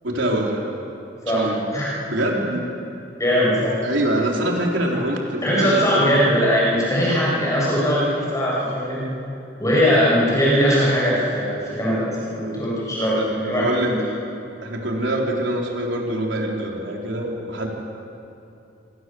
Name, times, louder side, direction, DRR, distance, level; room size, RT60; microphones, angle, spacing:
voice 1, 0.0-0.7 1.3-1.6 2.1-2.7 3.8-6.1 13.1-13.9 14.6-17.7, right 1 dB, 85° right, -1 dB, 4.2 m, -24 dB
voice 2, 1.2-1.9 3.2-3.7 5.4-9.0 9.6-13.9, equal, 20° left, -7 dB, 8.0 m, -20 dB
26.0 x 25.5 x 8.0 m, 2.7 s
head